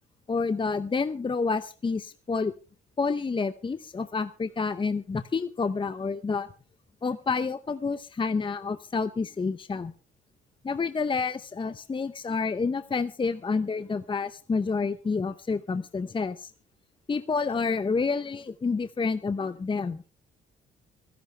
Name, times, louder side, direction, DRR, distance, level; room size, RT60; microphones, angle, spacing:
voice 1, 0.3-2.5 3.0-6.5 7.0-9.9 10.6-16.5 17.1-20.1, left 4 dB, 25° left, 12 dB, 0.8 m, -29 dB
24.0 x 11.0 x 3.4 m, 0.35 s
cardioid pair, 90°, 20 cm